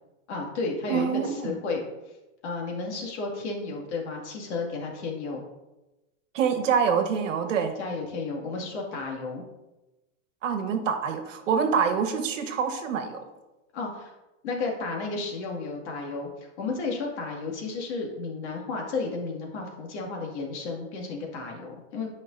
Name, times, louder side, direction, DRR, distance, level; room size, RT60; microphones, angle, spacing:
voice 1, 0.3-2.2 2.4-5.4 7.8-9.4 13.7-14.2 14.4-22.1, left 3 dB, 60° left, 0 dB, 2.2 m, -33 dB
voice 2, 0.9-1.5 6.3-7.7 10.4-13.2, right 6 dB, 75° right, 7 dB, 1.3 m, -26 dB
11.5 x 5.2 x 2.6 m, 1.0 s
supercardioid pair, 155°, 38 cm